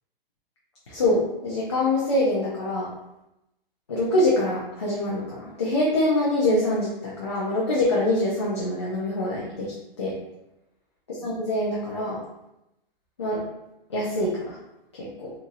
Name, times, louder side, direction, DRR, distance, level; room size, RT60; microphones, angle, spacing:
voice 1, 0.9-2.9 3.9-10.1 11.2-12.2 13.2-13.4 13.9-14.5 15.2-15.3, left 1 dB, 30° left, -6 dB, 0.4 m, -24 dB
3.9 x 2.7 x 2.5 m, 0.90 s
hypercardioid pair, 175°, 29 cm